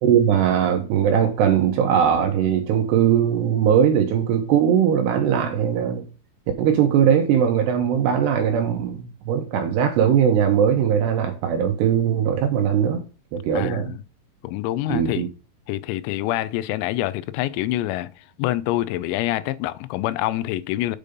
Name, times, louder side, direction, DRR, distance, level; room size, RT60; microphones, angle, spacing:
voice 1, 0.0-6.1 6.6-13.0 13.3-13.9 14.9-15.3, right 8 dB, 70° right, 2.7 m, -20 dB
voice 2, 13.5-14.0 14.4-15.3 15.7-18.1 18.4-21.0, left 15 dB, 90° left, 3.4 m, -26 dB
8.3 x 5.3 x 5.2 m
omnidirectional pair, 6.0 m